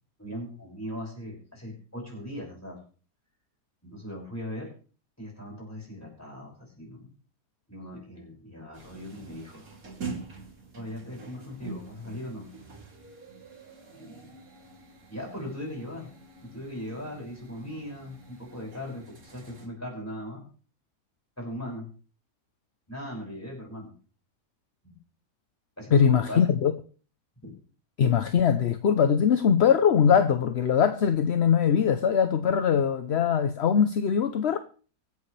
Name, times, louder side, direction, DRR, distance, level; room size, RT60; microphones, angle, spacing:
voice 1, 0.2-2.8 3.8-4.7 5.2-7.1 7.7-9.7 10.7-12.5 13.9-14.4 15.1-16.1 16.4-20.5 21.4-21.9 22.9-23.9 24.8-25.0 25.8-26.5 27.4-27.5, left 1 dB, 10° left, 6.0 m, -39 dB
sound 1, 8.7-19.7, right 4 dB, 60° right, 3.4 m, -45 dB
voice 2, 25.9-26.7 28.0-34.6, left 7 dB, 55° left, 0.8 m, -22 dB
24.5 x 8.5 x 3.3 m
omnidirectional pair, 1.7 m